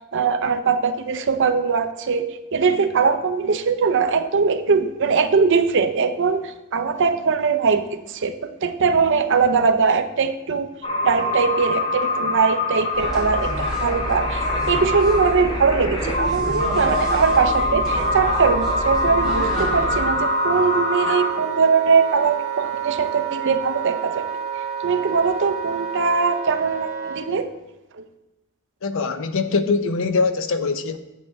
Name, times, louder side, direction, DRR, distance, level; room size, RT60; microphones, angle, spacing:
voice 1, 0.1-10.7 11.0-24.2 24.5-27.5 28.0-28.1, right 5 dB, 60° right, 9 dB, 0.6 m, -21 dB
sound 1, 10.8-21.3, left 2 dB, 25° left, 1.2 m, -24 dB
sound 2, 12.9-20.1, equal, ahead, 3.2 m, -29 dB
Wind instrument woodwind instrument, 17.9-27.2, right 7 dB, 35° right, 1.3 m, -29 dB
voice 2, 28.8-31.0, left 4 dB, 65° left, 10 dB, 0.6 m, -22 dB
8.4 x 8.1 x 3.5 m, 1.0 s
head